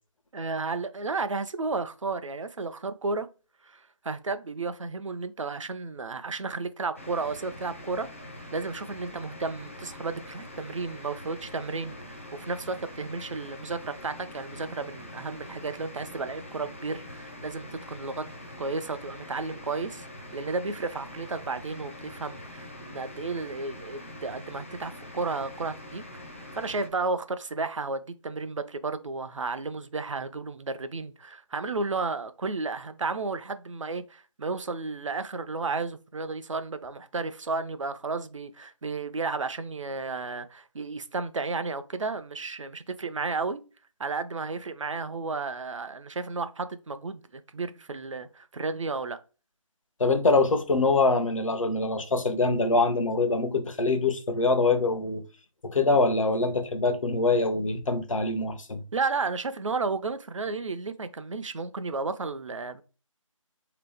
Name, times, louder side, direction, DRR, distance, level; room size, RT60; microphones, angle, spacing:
voice 1, 0.3-3.3 3.6-8.1 8.5-18.3 18.6-20.0 20.3-26.0 26.5-43.6 44.0-49.2 58.9-62.8, right 3 dB, 65° right, 0.5 m, -33 dB
sound 1, 7.0-26.9, left 1 dB, 25° left, 0.4 m, -44 dB
voice 2, 50.0-55.2 55.6-58.8, left 3 dB, 70° left, 0.8 m, -24 dB
3.4 x 2.9 x 3.4 m
figure-of-eight pair, 170°, 17 cm